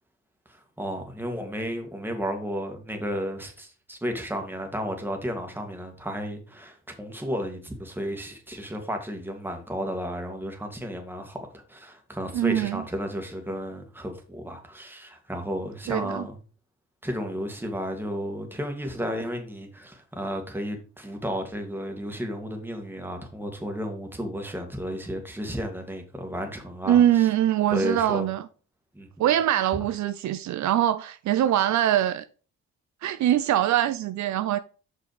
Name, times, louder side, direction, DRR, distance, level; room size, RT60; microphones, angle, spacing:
voice 1, 0.5-16.4 17.0-27.3 27.7-28.3 28.9-29.2, equal, 5° right, 2.1 m, -33 dB
voice 2, 12.3-12.8 15.9-16.2 26.9-28.4 29.2-32.2 33.0-34.6, right 12 dB, 70° right, 0.6 m, -23 dB
6.1 x 5.5 x 4.9 m
cardioid pair, 90°, 30 cm